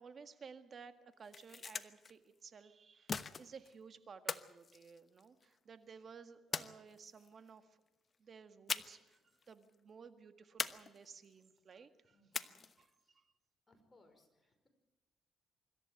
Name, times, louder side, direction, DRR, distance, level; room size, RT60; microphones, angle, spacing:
voice 1, 0.0-7.8 8.2-9.2 9.5-13.2, right 5 dB, 45° right, 9 dB, 1.7 m, -56 dB
sound 1, 1.1-2.1 3.1-3.7 4.3-5.5 6.5-7.3 8.7-9.2 9.4-9.5 10.6-11.3 12.3-12.9, left 5 dB, 40° left, 1.0 m, -42 dB
voice 2, 12.1-12.5 13.0-13.2 13.7-14.7, left 2 dB, 20° left, 5 dB, 5.4 m, -69 dB
25.0 x 13.5 x 9.0 m, 1.1 s
cardioid pair, 90°, 0 cm